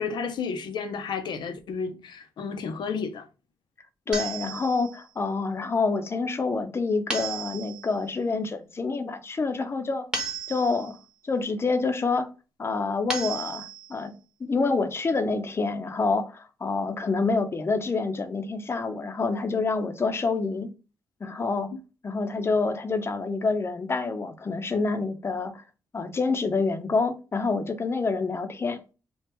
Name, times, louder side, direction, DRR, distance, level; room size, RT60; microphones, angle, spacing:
voice 1, 0.0-3.3, left 5 dB, 70° left, 0.7 m, -32 dB
voice 2, 4.1-10.1 10.5-11.0 11.2-12.3 12.6-14.1 14.4-20.7 21.2-21.7 22.0-25.6 25.9-28.8, left 4 dB, 30° left, 0.7 m, -27 dB
sound 1, 4.1-5.0 7.1-8.0 10.1-11.0 13.1-14.0, right 3 dB, 10° right, 1.1 m, -34 dB
3.5 x 2.3 x 4.3 m
cardioid pair, 95°, 8 cm